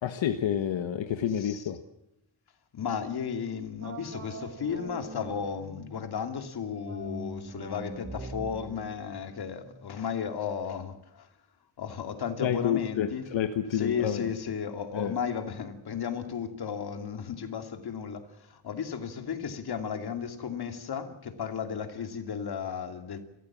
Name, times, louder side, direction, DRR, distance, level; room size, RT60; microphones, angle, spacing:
voice 1, 0.0-1.8 12.4-14.3 14.9-15.1, left 9 dB, 80° left, 1.5 m, -29 dB
voice 2, 2.7-11.3 11.8-13.2 13.7-23.2, left 7 dB, 55° left, 2.7 m, -34 dB
sound 1, 3.8-6.1 6.8-10.2, right 2 dB, 35° right, 4.9 m, -43 dB
28.0 x 15.0 x 7.4 m
wide cardioid pair, 170°, 45 cm